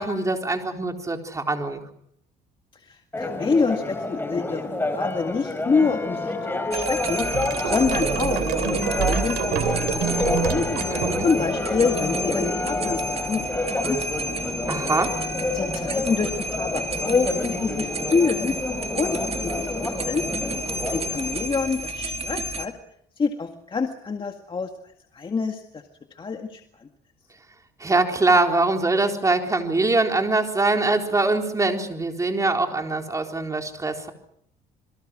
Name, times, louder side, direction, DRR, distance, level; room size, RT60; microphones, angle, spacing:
voice 1, 0.0-1.8 10.9-11.3 14.7-15.1 27.8-34.1, right 3 dB, 20° right, 3 dB, 4.0 m, -23 dB
voice 2, 2.9-7.3 7.6-10.9 11.2-13.0 13.3-14.3 15.5-18.5 19.0-20.3 20.9-22.7 23.2-24.7 25.1-25.6 26.2-26.6, left 5 dB, 30° left, 5 dB, 2.0 m, -26 dB
Church bell, 3.1-21.5, left 2 dB, 10° left, 4.3 m, -29 dB
sound 1, 6.7-22.6, right 1 dB, 35° right, 2.8 m, -31 dB
sound 2, 6.7-11.6, right 10 dB, 85° right, 2.9 m, -28 dB
28.0 x 23.0 x 6.3 m, 0.71 s
cardioid pair, 110°, 17 cm